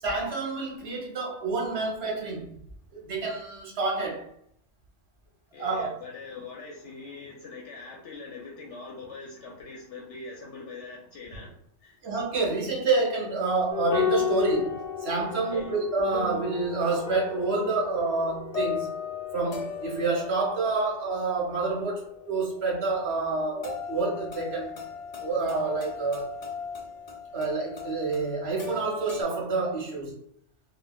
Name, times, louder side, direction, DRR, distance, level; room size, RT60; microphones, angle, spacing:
voice 1, 0.0-2.5 2.9-4.3 5.6-5.9 12.0-18.9 19.3-24.7 25.2-26.3 27.3-30.1, right 3 dB, 60° right, -1 dB, 1.1 m, -28 dB
voice 2, 5.5-11.6 11.8-12.0 15.3-15.7, left 4 dB, 70° left, -2 dB, 0.8 m, -42 dB
sound 1, 13.7-29.2, left 6 dB, 55° left, 0.4 m, -35 dB
3.2 x 2.2 x 2.2 m, 0.69 s
omnidirectional pair, 1.2 m